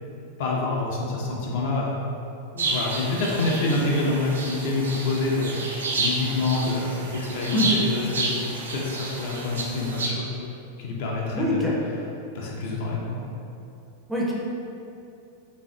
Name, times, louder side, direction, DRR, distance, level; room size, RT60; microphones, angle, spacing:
voice 1, 0.4-1.9 2.5-5.6 6.0-10.4 10.8-11.6 12.3-13.3, left 3 dB, 50° left, -3 dB, 0.4 m, -27 dB
sound 1, 2.6-10.1, right 2 dB, 65° right, 0.4 m, -30 dB
voice 2, 11.3-11.7 14.1-14.3, left 1 dB, ahead, -6 dB, 0.5 m, -24 dB
3.2 x 2.4 x 2.2 m, 2.7 s
figure-of-eight pair, 90°, 0 cm